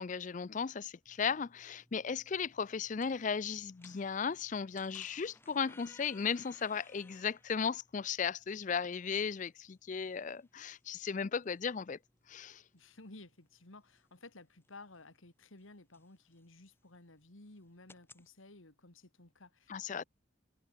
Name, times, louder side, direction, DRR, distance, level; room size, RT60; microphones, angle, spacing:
voice 1, 0.0-12.0 12.3-12.6 19.7-20.0, left 6 dB, 40° left, 0.4 m, -36 dB
sound 1, 1.1-18.3, left 2 dB, 10° left, 5.3 m, -64 dB
voice 2, 12.7-20.0, left 2 dB, 80° left, 2.5 m, -55 dB
head